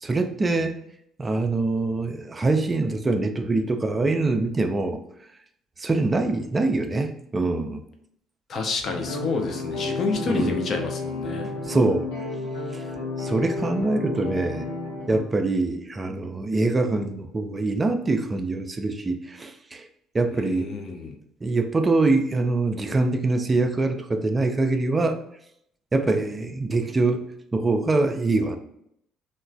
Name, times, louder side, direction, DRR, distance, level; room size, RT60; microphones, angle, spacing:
voice 1, 0.0-0.8 1.2-5.0 5.8-7.8 10.3-10.5 11.7-12.1 12.7-12.8 13.2-14.7 15.1-19.9 20.1-20.7 21.4-25.2 25.9-28.6, right 2 dB, 25° right, 6 dB, 0.3 m, -24 dB
voice 2, 8.5-11.5 20.3-21.1, left 4 dB, 45° left, 4 dB, 0.5 m, -29 dB
sound 1, 8.8-15.2, left 3 dB, 70° left, 1.0 m, -32 dB
3.0 x 2.1 x 2.4 m, 0.73 s
figure-of-eight pair, 50°, 0 cm